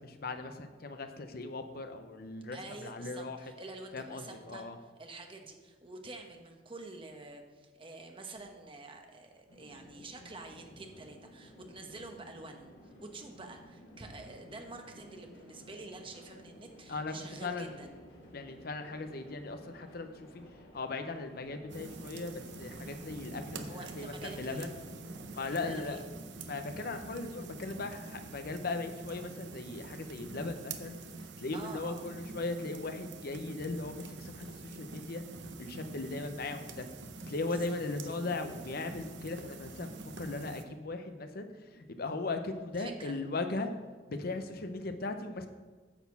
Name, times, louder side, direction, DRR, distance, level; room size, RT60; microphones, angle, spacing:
voice 1, 0.0-3.4 3.9-4.8 16.9-17.1 17.4-17.7 18.3-20.3 20.7-24.7 25.3-26.0 26.5-31.0 31.4-35.2 35.6-36.9 37.2-41.5 41.7-43.7 44.1-45.5, left 3 dB, 55° left, 7 dB, 0.7 m, -38 dB
voice 2, 2.5-12.7 13.0-17.9 23.7-24.7 25.4-26.0 31.5-32.1 37.5-37.8 42.8-43.2, right 2 dB, 30° right, 4 dB, 1.0 m, -48 dB
sound 1, 9.5-26.1, equal, 80° left, 2.5 m, -55 dB
sound 2, 21.7-40.6, right 3 dB, 80° right, 0.7 m, -46 dB
9.8 x 4.2 x 7.1 m, 1.3 s
head